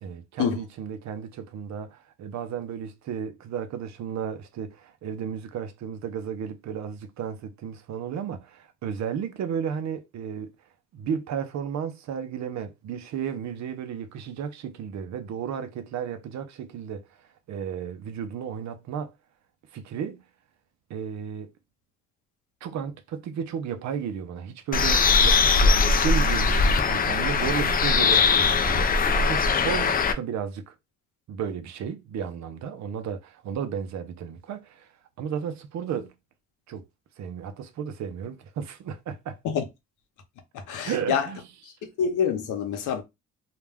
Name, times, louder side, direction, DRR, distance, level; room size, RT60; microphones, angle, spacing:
voice 1, 0.0-10.5 10.9-17.1 17.5-19.1 19.7-20.2 20.9-21.5 22.6-30.7 31.3-34.9 35.2-36.1 36.7-36.8 37.2-39.4 40.8-41.4, right 7 dB, 65° right, 0.6 m, -33 dB
Bird, 24.7-30.1, left 4 dB, 30° left, 0.4 m, -21 dB
voice 2, 40.5-41.3 42.0-43.0, left 7 dB, 85° left, 0.8 m, -26 dB
2.4 x 2.2 x 3.4 m
cardioid pair, 90°, 30 cm